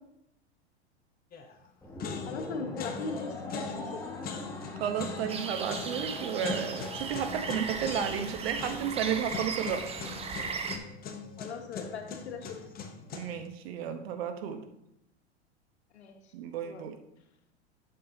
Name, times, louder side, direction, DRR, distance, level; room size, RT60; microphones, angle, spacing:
sound 1, 1.3-1.7 2.0-13.5, left 5 dB, 25° left, 0.9 m, -41 dB
sound 2, 1.8-8.3, left 3 dB, 10° left, 1.1 m, -43 dB
voice 1, 2.2-4.0 11.4-12.6 15.9-16.3 16.6-16.9, left 4 dB, 75° left, 4 dB, 1.3 m, -39 dB
voice 2, 4.8-9.9 13.1-14.6 16.3-17.0, right 8 dB, 65° right, 7 dB, 1.0 m, -33 dB
sound 3, 5.3-10.8, right 5 dB, 20° right, 0.7 m, -37 dB
8.7 x 6.7 x 2.8 m, 0.81 s
hypercardioid pair, 95°, 33 cm